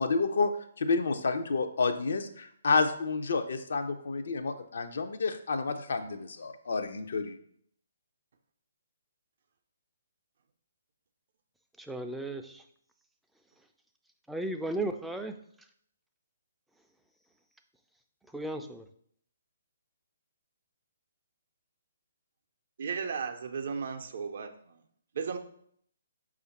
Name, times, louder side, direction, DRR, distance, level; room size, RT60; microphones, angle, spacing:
voice 1, 0.0-7.4, left 4 dB, 65° left, 7 dB, 0.5 m, -30 dB
voice 2, 11.8-12.6 14.3-15.3 18.3-18.8, right 2 dB, 5° right, 5 dB, 0.3 m, -35 dB
voice 3, 22.8-24.5 25.1-25.4, right 6 dB, 60° right, 6 dB, 0.5 m, -34 dB
4.9 x 2.5 x 4.1 m, 0.65 s
figure-of-eight pair, 135°, 0 cm